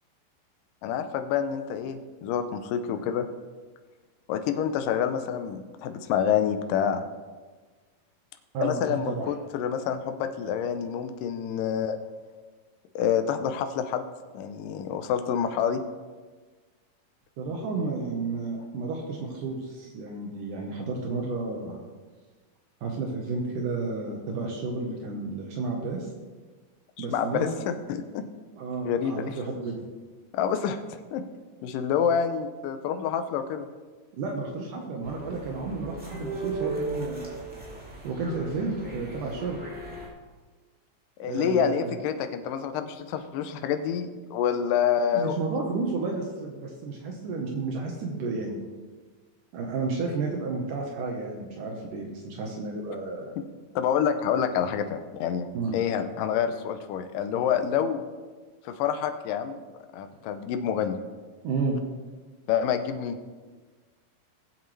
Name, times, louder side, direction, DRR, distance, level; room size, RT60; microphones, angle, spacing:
voice 1, 0.8-3.3 4.3-7.0 8.6-12.0 13.0-14.1 14.3-15.8 27.0-28.3 28.8-29.3 30.3-30.8 31.1-31.2 31.6-33.7 41.2-45.4 53.8-55.5 55.7-58.0 58.7-59.6 59.9-61.0 62.5-63.2, left 8 dB, 80° left, 8 dB, 2.4 m, -27 dB
voice 2, 8.5-9.3 17.4-21.9 22.8-26.1 27.0-27.6 28.6-29.8 34.2-37.4 38.0-39.6 41.2-42.0 45.1-48.6 49.5-53.3 55.5-55.8 61.4-61.8, right 3 dB, 75° right, 0 dB, 2.7 m, -32 dB
sound 1, 35.0-40.1, right 3 dB, 5° right, 1.8 m, -37 dB
20.5 x 8.2 x 3.2 m, 1.4 s
omnidirectional pair, 3.9 m